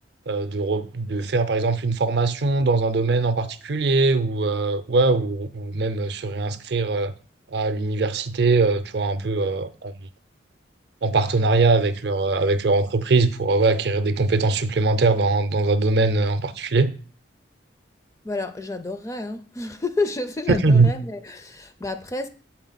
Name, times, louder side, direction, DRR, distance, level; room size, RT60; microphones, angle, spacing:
voice 1, 0.3-7.1 7.5-9.9 11.0-16.9 20.6-20.9, right 3 dB, 60° right, 0.5 m, -21 dB
voice 2, 18.2-22.3, left 2 dB, 15° left, 0.4 m, -30 dB
7.7 x 4.5 x 3.9 m
head